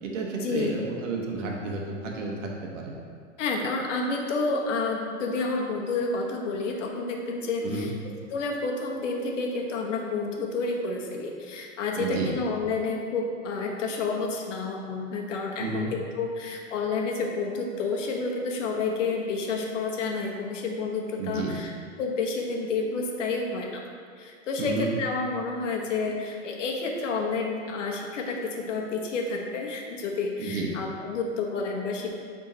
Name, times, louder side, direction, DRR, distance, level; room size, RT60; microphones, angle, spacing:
voice 1, 0.0-2.9 7.6-7.9 12.0-12.4 15.6-15.9 21.2-21.6 24.6-25.0 30.4-30.7, right 3 dB, 75° right, -1 dB, 1.3 m, -31 dB
voice 2, 3.4-7.9 8.3-21.7 22.0-23.8 24.2-32.1, left 3 dB, 70° left, 1 dB, 1.2 m, -30 dB
9.1 x 3.7 x 2.8 m, 2.2 s
hypercardioid pair, 145°, 39 cm